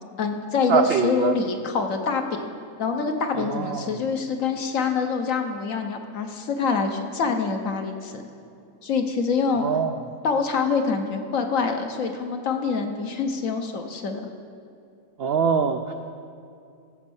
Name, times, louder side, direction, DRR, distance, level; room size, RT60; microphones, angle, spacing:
voice 1, 0.2-2.5 2.8-8.2 8.8-9.6 10.2-14.3, left 5 dB, 65° left, 5 dB, 1.3 m, -25 dB
voice 2, 0.7-1.3 3.4-3.9 9.6-9.9 15.2-15.9, right 6 dB, 75° right, 7 dB, 0.5 m, -23 dB
14.5 x 5.3 x 7.1 m, 2.5 s
omnidirectional pair, 1.5 m